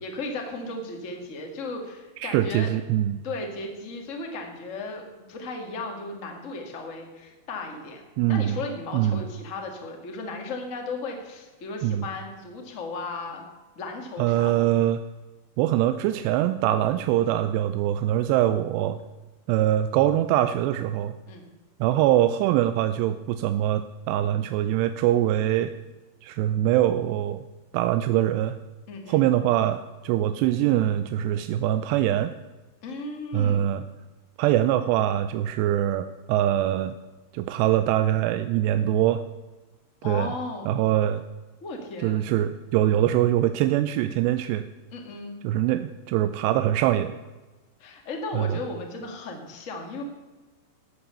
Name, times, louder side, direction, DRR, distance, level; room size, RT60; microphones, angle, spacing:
voice 1, 0.0-2.7 3.2-5.0 5.3-8.0 8.3-13.4 13.7-14.7 21.3-21.4 28.9-29.3 32.8-33.7 40.0-40.7 41.6-42.3 42.9-43.2 44.9-45.3 47.8-50.0, left 3 dB, 35° left, 2 dB, 1.2 m, -35 dB
voice 2, 2.2-3.2 8.2-8.6 8.9-9.2 11.8-12.0 14.2-15.0 15.6-19.0 19.5-21.1 21.8-25.7 26.2-27.4 27.7-28.6 29.1-32.3 33.3-33.9 34.4-37.0 37.3-39.2 40.0-40.3 40.7-41.2 42.0-44.7 45.4-47.2 48.3-48.6, right 12 dB, 85° right, 11 dB, 2.7 m, -23 dB
13.0 x 9.0 x 6.9 m, 1.2 s
omnidirectional pair, 4.8 m